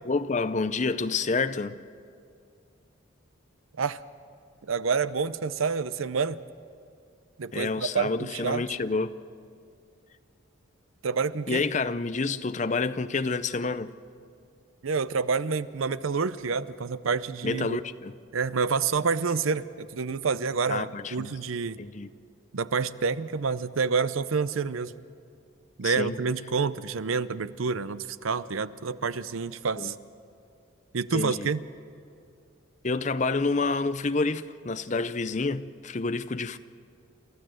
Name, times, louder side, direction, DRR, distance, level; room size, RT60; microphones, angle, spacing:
voice 1, 0.1-1.8 7.5-9.1 11.5-13.9 17.4-18.1 20.7-21.3 21.8-22.1 25.8-26.2 29.8-29.9 31.1-31.5 32.8-36.6, left 3 dB, 35° left, 0.6 m, -28 dB
voice 2, 4.6-6.4 7.4-8.6 11.0-11.6 14.8-17.8 18.3-21.8 22.5-24.9 25.8-29.9 30.9-31.6, right 5 dB, 85° right, 0.6 m, -28 dB
29.0 x 13.0 x 7.8 m
head